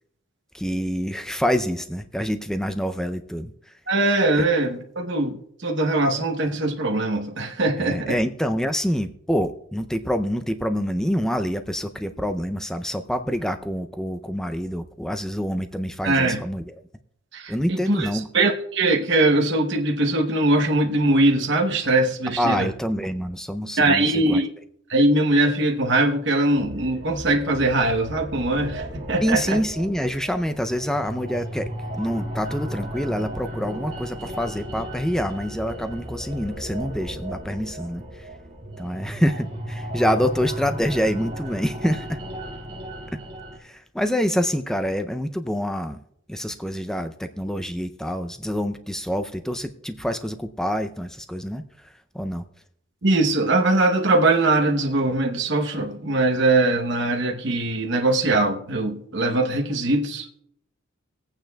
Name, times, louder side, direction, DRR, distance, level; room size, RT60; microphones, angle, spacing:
voice 1, 0.5-3.5 7.8-16.6 17.5-18.3 22.4-24.4 29.2-38.3 38.8-42.2 43.6-46.0 46.3-51.6 52.1-52.4, equal, 5° left, 9 dB, 0.4 m, -26 dB
voice 2, 3.9-5.4 5.6-8.2 16.0-16.4 17.3-18.1 18.3-22.7 23.8-24.5 24.9-29.6 53.0-60.4, right 2 dB, 55° right, 3 dB, 0.9 m, -21 dB
sound 1, 26.6-43.6, equal, 30° right, 1.8 m, -35 dB
23.0 x 8.9 x 2.3 m, 0.73 s
head